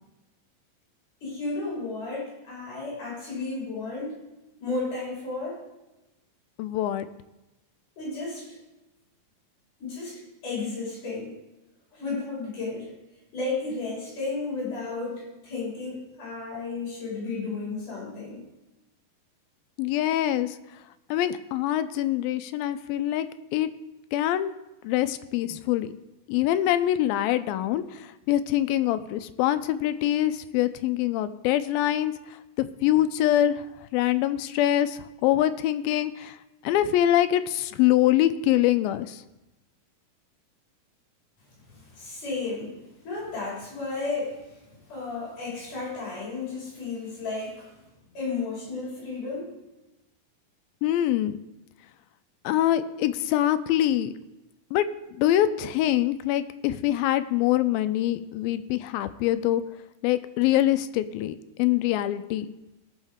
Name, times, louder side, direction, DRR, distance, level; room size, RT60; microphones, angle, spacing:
voice 1, 1.2-4.2 4.6-5.6 8.0-8.5 9.8-11.3 11.9-12.9 13.3-18.4 41.7-42.8 43.0-44.4 44.9-47.7 48.1-49.5, left 3 dB, 60° left, -5 dB, 5.7 m, -33 dB
voice 2, 6.6-7.1 19.8-20.6 21.1-23.3 23.5-23.7 24.1-24.5 24.8-25.9 26.3-32.1 32.6-33.6 33.9-36.4 36.6-39.2 50.8-51.4 52.4-54.1 54.7-54.9 55.2-59.6 60.0-62.5, left 13 dB, 85° left, 12 dB, 2.3 m, -24 dB
17.5 x 6.5 x 3.6 m, 0.98 s
omnidirectional pair, 4.2 m